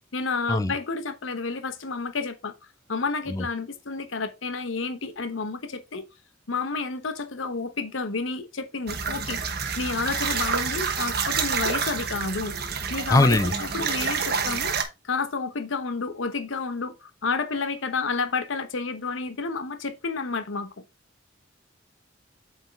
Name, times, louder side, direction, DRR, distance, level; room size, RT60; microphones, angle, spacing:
voice 1, 0.1-2.5 2.9-6.1 6.5-9.4 9.8-12.5 12.9-14.8 15.0-20.7, left 4 dB, 85° left, 0.9 m, -30 dB
sound 1, 8.9-14.8, right 6 dB, 55° right, 1.0 m, -28 dB
voice 2, 13.1-13.5, left 2 dB, 15° left, 0.4 m, -20 dB
8.0 x 4.5 x 3.3 m
head